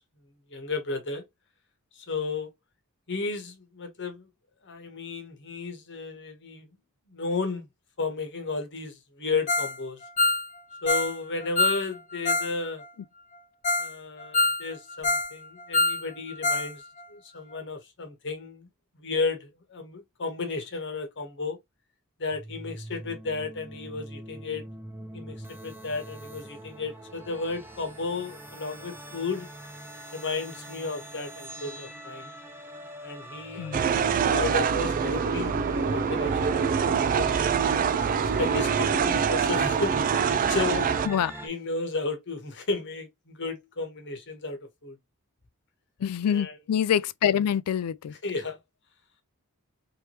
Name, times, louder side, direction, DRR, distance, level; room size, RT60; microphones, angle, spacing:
voice 1, 0.5-1.2 2.1-2.5 3.1-4.2 4.6-6.7 7.1-7.6 8.0-10.0 10.8-12.8 13.8-16.8 17.1-18.7 19.0-21.6 22.2-24.6 25.1-25.4 25.6-29.5 30.1-32.3 33.0-35.6 35.9-37.5 38.4-40.9 41.4-44.9 46.3-46.6 48.2-48.6, left 3 dB, 55° left, 1.1 m, -33 dB
Ringtone, 9.5-9.8 10.0-12.5 12.8-12.9 13.3-13.4 13.6-13.9 14.2-15.3 15.6-16.7 17.0-17.1 17.5-17.6, left 3 dB, 35° left, 0.7 m, -26 dB
sound 1, 22.3-41.5, right 2 dB, 10° right, 0.7 m, -41 dB
sound 2, 33.7-41.1, right 6 dB, 40° right, 0.3 m, -25 dB
voice 2, 46.0-48.1, left 9 dB, 90° left, 0.3 m, -26 dB
3.3 x 3.0 x 2.9 m
head